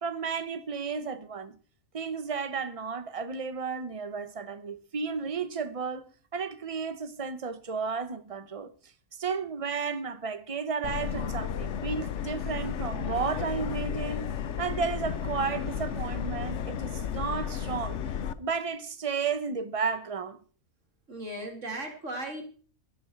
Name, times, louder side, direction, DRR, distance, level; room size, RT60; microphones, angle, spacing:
voice 1, 0.0-1.5 1.9-8.7 9.2-14.3 14.6-18.0 18.4-20.4, right 5 dB, 25° right, 1.0 m, -33 dB
Subway metro underground, 10.8-18.3, left 8 dB, 60° left, 1.0 m, -33 dB
voice 2, 21.1-22.4, right 1 dB, 60° right, 2.8 m, -36 dB
13.0 x 12.0 x 4.7 m
omnidirectional pair, 1.4 m